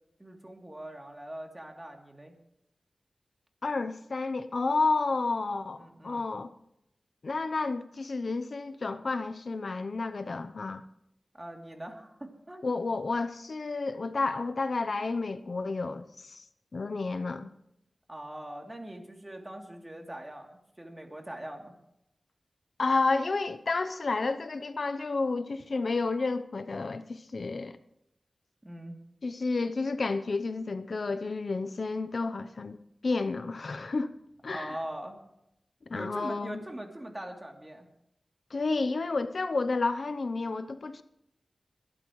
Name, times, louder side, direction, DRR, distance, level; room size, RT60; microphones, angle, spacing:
voice 1, 0.2-2.4 5.8-6.3 11.3-12.6 18.1-21.7 28.6-28.9 34.5-35.2 35.9-37.9, right 1 dB, 20° right, 2.9 m, -42 dB
voice 2, 3.6-6.5 7.2-10.8 12.6-16.4 16.7-17.5 22.8-27.8 29.2-32.8 33.0-34.2 34.4-34.8 35.9-36.6 38.5-41.0, left 3 dB, 65° left, 0.7 m, -31 dB
22.0 x 12.5 x 3.1 m
wide cardioid pair, 75°, 0 cm